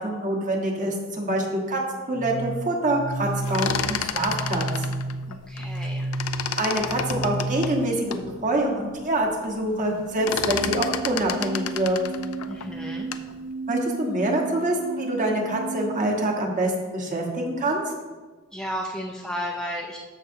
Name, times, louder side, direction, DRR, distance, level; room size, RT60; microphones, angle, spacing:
voice 1, 0.0-1.8 2.1-4.9 6.6-12.0 13.7-17.8, right 1 dB, 35° right, 0 dB, 1.3 m, -25 dB
sound 1, 2.1-8.1 10.1-16.1, right 2 dB, 60° right, 1.5 m, -33 dB
sound 2, 3.3-5.9 6.1-8.3 8.8-8.9 9.1-9.5 9.8-13.3, left 8 dB, 80° left, 0.5 m, -31 dB
voice 2, 5.3-6.1 12.5-13.1 18.5-20.0, equal, 5° left, -2 dB, 0.6 m, -33 dB
13.5 x 5.6 x 2.8 m, 1.4 s
head